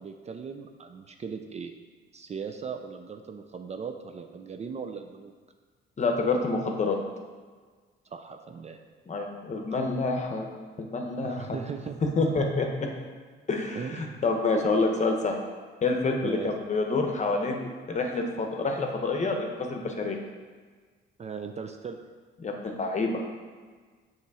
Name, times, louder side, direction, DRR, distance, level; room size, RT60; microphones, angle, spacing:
voice 1, 0.0-1.7 2.1-5.3 8.1-8.8 9.7-9.8 11.2-12.0 13.7-14.2 16.2-16.5 21.2-22.0, right 6 dB, 35° right, 6 dB, 0.4 m, -38 dB
voice 2, 6.0-7.0 9.1-10.5 10.8-11.6 12.2-12.9 13.5-15.3 15.8-20.2 22.4-23.2, left 3 dB, 35° left, 2 dB, 0.9 m, -27 dB
7.1 x 3.1 x 4.8 m, 1.5 s
cardioid pair, 90°, 20 cm